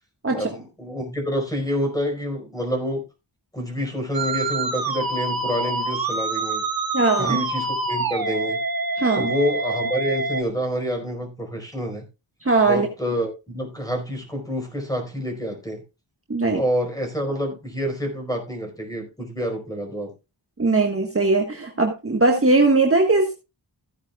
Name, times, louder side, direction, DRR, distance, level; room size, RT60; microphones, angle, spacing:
voice 1, 0.3-3.1 3.5-6.6 7.2-8.6 9.2-12.0 12.7-15.8 16.5-20.1, equal, 10° left, 4.8 m, -27 dB
Musical instrument, 4.1-10.4, right 2 dB, 50° right, 1.6 m, -26 dB
voice 2, 6.9-7.4 9.0-9.3 12.4-12.9 16.3-16.6 20.6-23.3, right 3 dB, 30° right, 1.6 m, -19 dB
15.5 x 9.5 x 2.4 m
wide cardioid pair, 90°, 45 cm